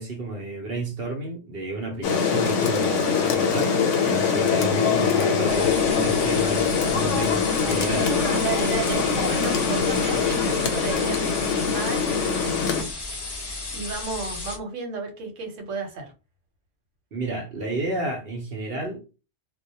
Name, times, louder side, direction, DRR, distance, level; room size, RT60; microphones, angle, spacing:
voice 1, 0.0-8.1 17.1-19.1, right 2 dB, 60° right, 0.8 m, -31 dB
Rain, 2.0-12.8, left 6 dB, 80° left, 0.9 m, -23 dB
sound 1, 5.5-14.6, left 3 dB, 35° left, 0.4 m, -34 dB
voice 2, 7.9-12.9 13.7-16.1, right 4 dB, 85° right, 1.1 m, -33 dB
2.1 x 2.1 x 2.7 m
omnidirectional pair, 1.2 m